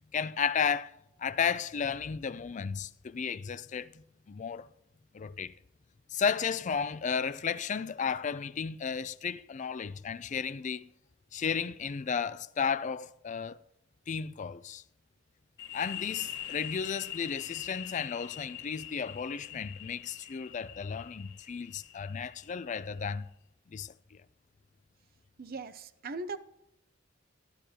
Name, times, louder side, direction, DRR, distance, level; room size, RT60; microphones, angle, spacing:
voice 1, 0.1-4.7 5.1-5.5 6.1-10.9 11.3-13.6 14.1-14.8 15.7-23.3 23.7-24.2, left 6 dB, 40° left, 0.4 m, -33 dB
sound 1, 15.6-23.1, left 11 dB, 65° left, 1.7 m, -43 dB
voice 2, 25.4-26.4, right 3 dB, 50° right, 0.6 m, -39 dB
12.5 x 11.5 x 2.8 m
head